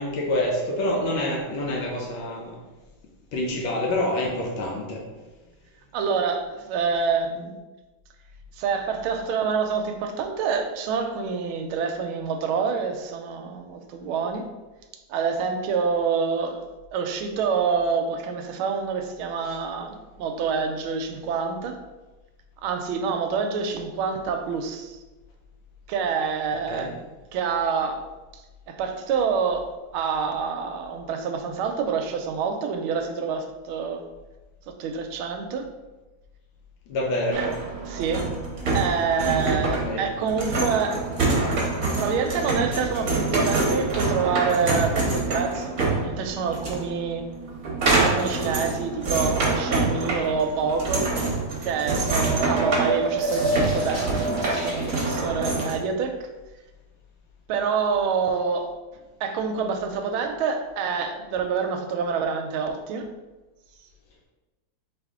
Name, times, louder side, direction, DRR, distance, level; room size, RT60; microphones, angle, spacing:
voice 1, 0.0-2.6 3.3-5.0 19.4-19.5 26.7-26.9 36.9-37.5 39.8-40.1, left 1 dB, 70° left, -1 dB, 1.3 m, -27 dB
voice 2, 5.9-7.5 8.6-14.5 15.1-16.6 16.9-21.8 22.6-25.0 25.9-27.0 27.3-28.0 28.3-34.0 34.8-35.7 37.4-37.5 37.9-38.3 38.7-41.0 41.8-47.2 48.0-51.1 51.6-56.2 57.5-58.7 59.2-63.1, right 5 dB, 80° right, 5 dB, 1.4 m, -27 dB
sound 1, 37.3-55.7, right 3 dB, 50° right, 1.2 m, -26 dB
sound 2, 52.1-55.1, right 2 dB, 20° right, 0.4 m, -28 dB
4.2 x 3.5 x 3.5 m, 1.2 s
omnidirectional pair, 2.4 m